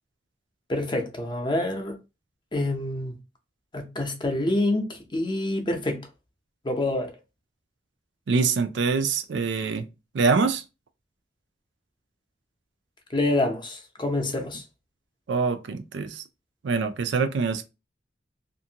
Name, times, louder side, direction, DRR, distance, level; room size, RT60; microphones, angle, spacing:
voice 1, 0.7-2.0 2.5-3.1 3.7-6.1 6.6-7.1 13.1-14.6, left 2 dB, 25° left, 0.6 m, -27 dB
voice 2, 8.3-9.8 10.1-10.6 15.3-16.2 16.6-17.6, right 4 dB, 70° right, 0.4 m, -24 dB
2.6 x 2.5 x 2.7 m
head